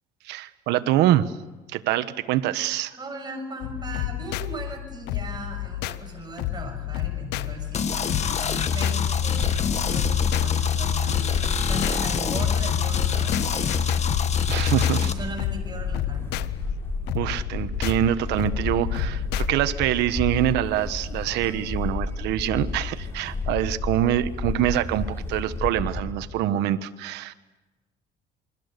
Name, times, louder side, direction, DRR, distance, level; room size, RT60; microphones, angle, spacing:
voice 1, 0.2-1.3 1.7-3.0 14.5-15.1 17.1-27.3, right 12 dB, 90° right, 12 dB, 1.3 m, -25 dB
voice 2, 3.0-11.4 11.7-14.0 15.0-16.4, right 2 dB, 25° right, 3 dB, 6.9 m, -38 dB
sound 1, 3.6-19.5, left 16 dB, 90° left, 0.8 m, -32 dB
sound 2, 7.7-15.1, left 7 dB, 40° left, 1.6 m, -25 dB
sound 3, 9.0-26.4, left 3 dB, 15° left, 4.6 m, -32 dB
28.0 x 23.0 x 6.8 m, 1.1 s
cardioid pair, 110°, 17 cm